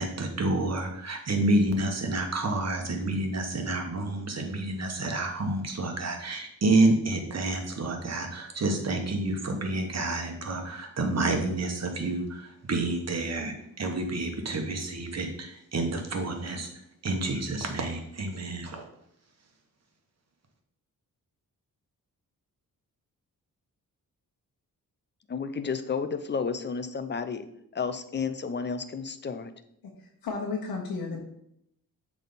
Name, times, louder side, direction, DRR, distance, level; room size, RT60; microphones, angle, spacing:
voice 1, 0.0-16.7 17.0-18.8, right 2 dB, 45° right, 3 dB, 1.4 m, -29 dB
voice 2, 25.3-27.5 27.7-29.5, left 5 dB, 30° left, 10 dB, 0.6 m, -32 dB
voice 3, 29.8-31.2, left 4 dB, 80° left, -1 dB, 1.1 m, -34 dB
7.3 x 3.7 x 4.1 m, 0.74 s
cardioid pair, 70°, 35 cm